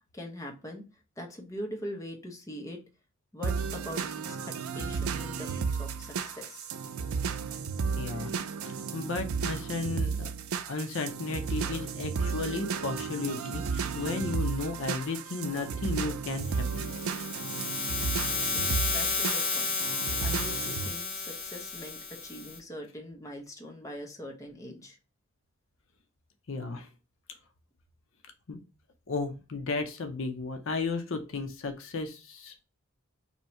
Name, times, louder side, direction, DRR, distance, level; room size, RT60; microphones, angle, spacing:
voice 1, 0.1-0.8 1.2-2.8 3.3-4.0 4.3-4.4 4.7-6.7 18.5-19.8 20.2-25.0, left 1 dB, 15° left, 1 dB, 0.8 m, -42 dB
sound 1, 3.4-20.9, right 5 dB, 85° right, 0.4 m, -33 dB
voice 2, 8.0-8.3 8.6-10.3 10.7-16.9 26.5-26.9 28.5-28.6 29.1-32.5, left 3 dB, 65° left, 6 dB, 0.6 m, -34 dB
sound 2, 16.4-22.6, left 4 dB, 35° left, 1.1 m, -32 dB
2.8 x 2.7 x 4.3 m, 0.32 s
head